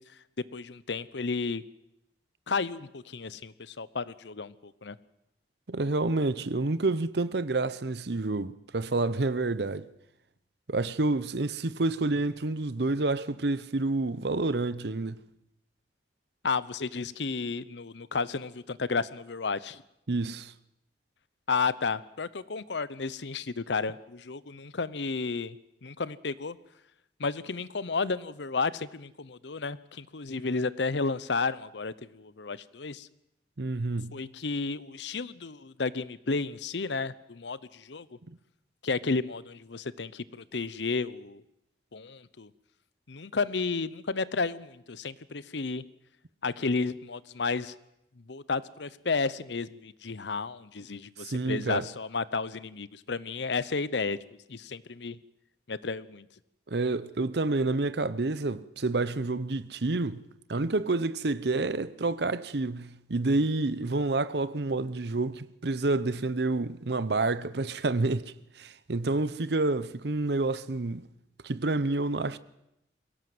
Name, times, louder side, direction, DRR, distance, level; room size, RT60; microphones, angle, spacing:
voice 1, 0.5-1.6 2.5-5.0 16.4-19.8 21.5-25.6 25.8-26.6 27.2-33.1 34.1-38.1 38.8-41.4 41.9-42.5 43.1-45.8 46.4-47.7 48.3-54.2 54.5-55.2 55.7-56.3, left 4 dB, 75° left, 0.8 m, -32 dB
voice 2, 5.7-9.9 10.7-15.2 20.1-20.5 33.6-34.3 51.2-51.9 56.7-60.2 60.5-71.0 71.4-72.4, right 2 dB, 60° right, 0.8 m, -29 dB
22.5 x 17.0 x 7.8 m
head